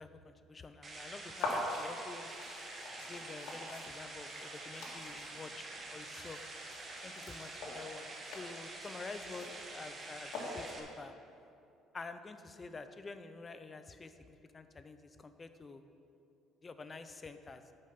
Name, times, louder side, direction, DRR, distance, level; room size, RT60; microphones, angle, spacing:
voice 1, 0.0-2.3 3.0-5.6 5.9-6.4 7.0-11.1 11.9-15.8 16.6-17.6, left 3 dB, 15° left, 10 dB, 0.4 m, -48 dB
sound 1, 0.8-10.8, right 2 dB, 20° right, 1.0 m, -47 dB
sound 2, 1.4-10.9, left 2 dB, 65° left, 1.7 m, -44 dB
10.0 x 5.3 x 5.6 m, 2.6 s
cardioid pair, 180°, 0 cm